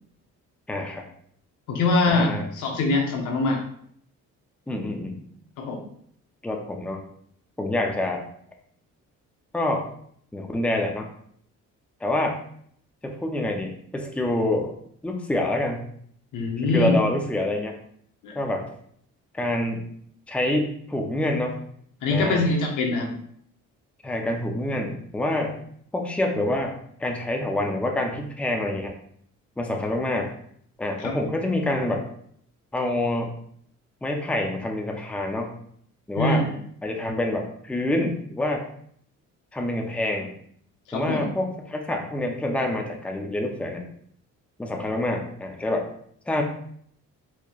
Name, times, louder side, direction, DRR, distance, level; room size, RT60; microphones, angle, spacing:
voice 1, 0.7-1.1 2.1-2.5 4.7-5.2 6.4-7.0 7.6-8.2 9.5-9.9 10.3-11.1 12.0-12.4 13.0-14.7 15.0-15.8 16.6-17.8 18.3-18.7 19.3-19.9 20.3-21.6 22.1-22.4 24.0-25.6 25.9-28.9 29.6-30.3 30.8-32.1 32.7-33.3 34.0-35.5 36.1-36.4 36.8-38.7 39.5-40.3 40.9-43.8 44.6-45.9 46.3-46.4, left 1 dB, 5° left, 2 dB, 0.5 m, -27 dB
voice 2, 1.7-3.6 5.6-5.8 16.3-17.0 18.2-18.4 22.0-23.1 31.0-31.1 36.2-36.5 40.9-41.3, left 2 dB, 85° left, 2 dB, 0.9 m, -23 dB
4.4 x 2.9 x 2.4 m, 0.65 s
cardioid pair, 90°, 30 cm